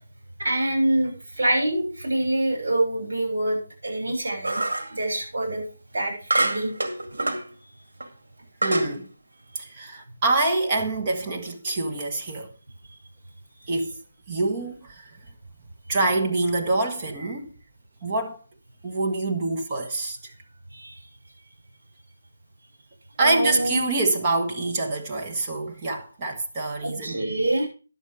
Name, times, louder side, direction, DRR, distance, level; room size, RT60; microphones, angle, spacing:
voice 1, 0.4-4.6 4.9-5.6 5.9-6.7 20.7-20.9 23.2-23.8 26.8-27.7, right 1 dB, 65° right, 6.5 m, -25 dB
sound 1, 4.4-5.0 6.3-7.5 8.0-8.1 8.6-8.9, right 2 dB, 80° right, 2.0 m, -25 dB
voice 2, 8.6-9.1 9.5-12.5 13.7-14.0 14.3-15.2 15.9-17.5 18.0-18.4 18.8-20.3 23.2-27.3, right 2 dB, 25° right, 1.5 m, -26 dB
11.0 x 7.3 x 4.9 m
figure-of-eight pair, 165°, 0 cm